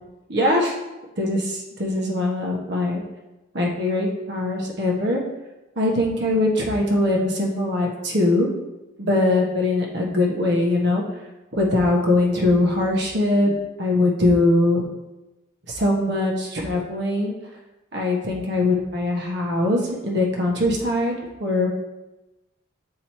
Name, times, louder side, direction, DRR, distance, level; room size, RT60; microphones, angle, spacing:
voice 1, 0.3-0.7 1.2-3.0 3.5-5.2 5.8-8.5 9.0-11.0 11.5-14.8 15.7-17.3 17.9-21.7, left 2 dB, 60° right, -2 dB, 1.1 m, -21 dB
8.5 x 3.1 x 4.3 m, 1.0 s
head